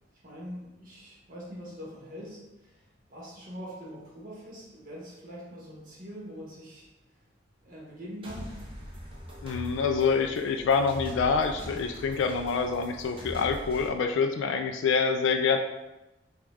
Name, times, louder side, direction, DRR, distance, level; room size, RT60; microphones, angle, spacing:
voice 1, 0.2-2.8 3.1-6.9 7.6-8.6, equal, 50° right, -5 dB, 1.4 m, -43 dB
sound 1, 8.2-13.9, equal, 30° right, 0.7 m, -42 dB
voice 2, 9.4-15.6, left 5 dB, 75° left, 6 dB, 0.3 m, -26 dB
5.0 x 2.3 x 3.4 m, 1.0 s
head